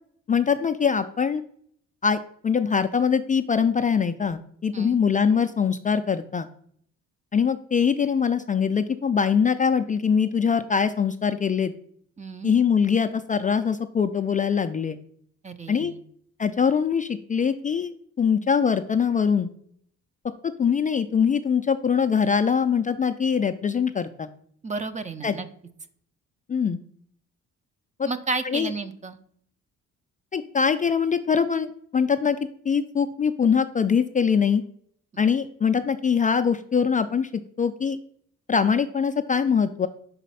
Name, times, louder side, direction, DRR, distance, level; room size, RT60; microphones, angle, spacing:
voice 1, 0.3-1.4 2.0-6.5 7.3-11.7 12.4-15.0 15.7-15.9 16.4-19.5 20.6-24.3 25.2-25.3 26.5-26.8 28.0-28.1 28.4-28.7 30.3-32.4 32.7-34.6 35.2-37.3 37.6-38.0 38.5-39.9, left 6 dB, 25° left, 8 dB, 0.3 m, -23 dB
voice 2, 12.2-12.5 15.4-16.0 24.6-25.5 28.0-29.2, right 3 dB, 25° right, 11 dB, 0.6 m, -32 dB
5.1 x 4.1 x 5.5 m, 0.64 s
cardioid pair, 90°, 30 cm